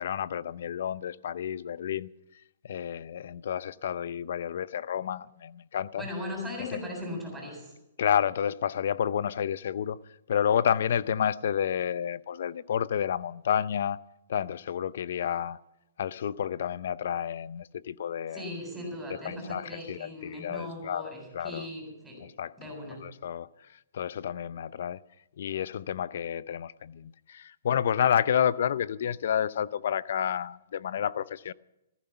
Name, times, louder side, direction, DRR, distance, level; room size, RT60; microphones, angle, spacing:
voice 1, 0.0-2.1 2.6-6.1 6.7-6.8 8.0-10.0 10.3-14.0 14.3-15.6 16.0-18.5 19.2-21.6 22.2-22.5 23.0-23.5 23.9-25.0 25.4-31.5, left 9 dB, 65° left, 0.6 m, -30 dB
voice 2, 6.0-7.7 18.3-22.2 22.6-23.0, left 1 dB, 5° right, 7.8 m, -38 dB
15.0 x 14.5 x 5.8 m
hypercardioid pair, 150°, 0 cm